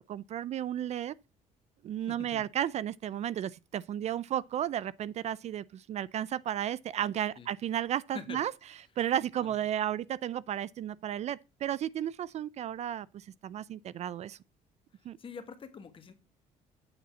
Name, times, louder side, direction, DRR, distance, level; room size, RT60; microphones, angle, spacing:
voice 1, 0.1-1.1 1.8-8.5 9.0-14.4 15.0-15.2, right 10 dB, 50° right, 0.4 m, -33 dB
voice 2, 2.1-2.4 7.4-7.5 8.1-8.4 9.4-9.5 15.2-16.1, left 5 dB, 35° left, 1.7 m, -45 dB
8.8 x 4.1 x 7.0 m
cardioid pair, 105°, 15 cm